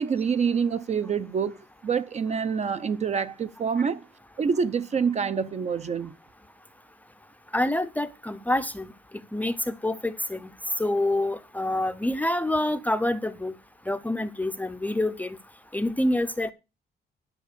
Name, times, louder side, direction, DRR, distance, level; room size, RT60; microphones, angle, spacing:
voice 1, 0.0-4.1 4.4-6.1, right 6 dB, 35° right, 0.6 m, -26 dB
voice 2, 7.5-8.9 9.3-10.5 10.8-13.5 13.9-15.4 15.7-16.5, left 1 dB, 10° left, 0.6 m, -27 dB
11.0 x 6.1 x 6.6 m
cardioid pair, 165°, 20 cm